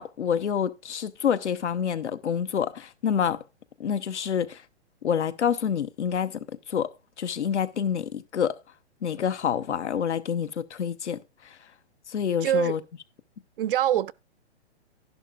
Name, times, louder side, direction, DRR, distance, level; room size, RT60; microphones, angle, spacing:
voice 1, 0.0-3.4 3.8-4.6 5.0-6.4 6.7-6.9 7.2-8.6 9.0-11.2 11.4-11.6 12.1-12.8, left 8 dB, 80° left, 1.0 m, -27 dB
voice 2, 12.4-12.8 13.6-14.1, right 12 dB, 55° right, 0.5 m, -24 dB
11.5 x 11.0 x 2.4 m
hypercardioid pair, 135°, 34 cm